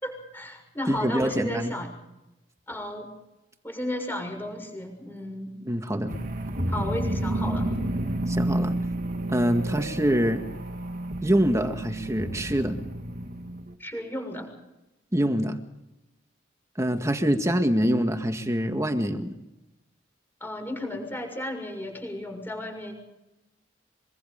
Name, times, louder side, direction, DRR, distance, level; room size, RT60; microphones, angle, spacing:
voice 1, 0.0-1.9 2.7-3.1 3.6-5.5 6.7-7.7 9.5-9.8 13.8-14.5 20.4-22.9, left 1 dB, 10° left, 3 dB, 6.6 m, -34 dB
voice 2, 0.9-1.7 5.6-6.1 8.3-8.8 9.3-10.5 11.2-12.8 15.1-15.6 16.8-19.4, equal, 15° right, 6 dB, 1.9 m, -25 dB
sound 1, 6.1-13.7, right 1 dB, 50° right, 2.2 m, -30 dB
24.5 x 24.5 x 5.3 m, 0.95 s
head